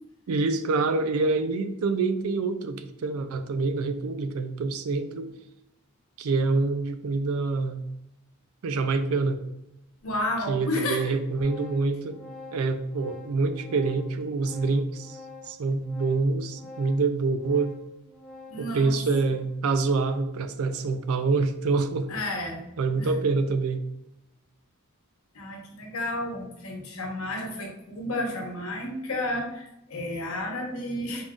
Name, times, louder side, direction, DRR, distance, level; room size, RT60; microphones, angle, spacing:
voice 1, 0.3-5.3 6.2-7.8 8.6-9.4 10.5-12.2 12.5-15.2 15.5-17.7 18.6-22.1 22.8-23.8, right 3 dB, 70° right, 10 dB, 0.4 m, -26 dB
voice 2, 10.0-11.2 18.5-18.9 22.1-22.6 22.9-23.1 25.3-31.2, left 1 dB, 70° left, 1 dB, 0.9 m, -31 dB
Organ, 10.8-20.4, left 3 dB, 5° left, 0.5 m, -47 dB
3.7 x 2.4 x 3.6 m, 0.86 s
head